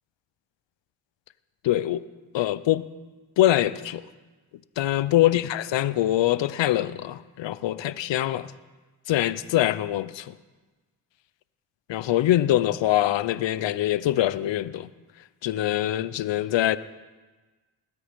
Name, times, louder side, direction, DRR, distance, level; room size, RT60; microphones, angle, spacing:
voice 1, 1.6-2.0 2.3-2.8 3.4-4.0 4.8-8.5 9.1-10.3 11.9-14.9 15.4-16.8, left 13 dB, 70° left, 0.8 m, -24 dB
20.5 x 8.5 x 5.2 m
supercardioid pair, 55°, 46 cm